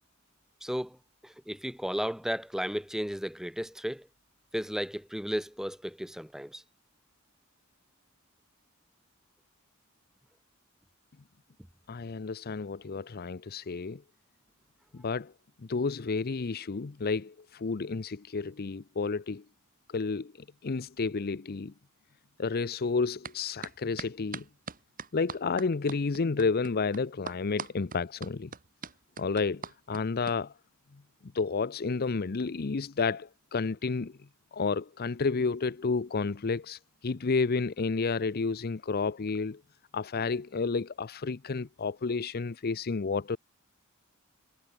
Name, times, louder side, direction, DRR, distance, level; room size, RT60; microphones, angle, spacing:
voice 1, 0.6-1.0 1.2-4.1 4.5-6.6, equal, ahead, 2.0 m, -34 dB
voice 2, 11.9-14.0 14.9-15.3 15.6-19.4 19.9-20.3 20.6-21.7 22.4-24.4 25.1-28.5 29.2-30.5 31.3-34.2 34.5-39.6 39.9-43.4, left 4 dB, 45° left, 0.6 m, -31 dB
sound 1, 23.2-23.4 23.6-30.4, right 5 dB, 40° right, 3.0 m, -41 dB
head